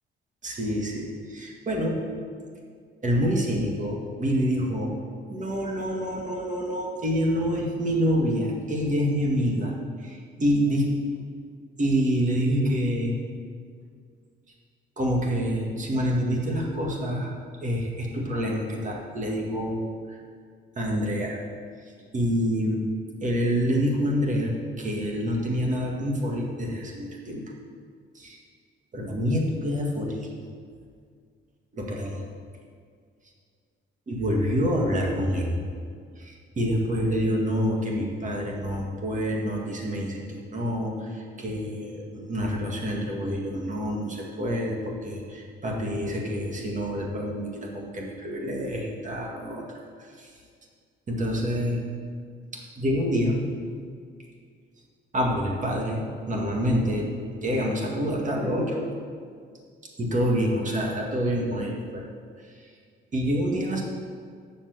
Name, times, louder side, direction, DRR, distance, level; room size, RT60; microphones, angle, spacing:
voice 1, 0.4-2.0 3.0-4.9 5.3-9.7 10.0-11.0 11.8-13.2 15.0-17.3 17.6-20.2 20.8-21.4 22.1-22.8 23.2-27.5 28.1-28.4 28.9-30.3 31.7-32.2 34.1-35.6 36.1-49.6 50.0-50.3 51.1-51.8 52.5-53.4 55.1-57.1 57.4-58.9 60.0-62.0 63.1-63.8, equal, 40° right, -1 dB, 2.0 m, -27 dB
8.3 x 6.3 x 6.6 m, 2.1 s
cardioid pair, 90°, 20 cm